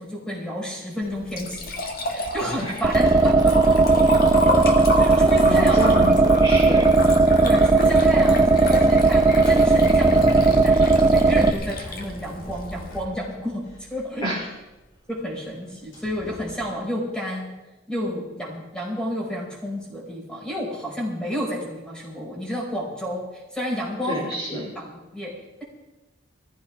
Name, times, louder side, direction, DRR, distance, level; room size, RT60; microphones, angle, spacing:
voice 1, 0.0-1.7 2.1-3.6 5.0-5.9 7.4-14.2 15.1-17.6 17.9-24.3 24.8-25.4, equal, 5° left, -3 dB, 5.2 m, -31 dB
Liquid, 1.0-13.0, left 1 dB, 50° left, 1.7 m, -31 dB
sound 1, 2.8-11.5, right 3 dB, 20° right, 0.7 m, -16 dB
voice 2, 5.4-6.9 14.2-14.4 24.1-24.7, equal, 25° left, -5 dB, 3.3 m, -28 dB
sound 2, 8.9-16.7, equal, 85° left, 4.7 m, -40 dB
20.5 x 15.0 x 3.6 m, 1.0 s
head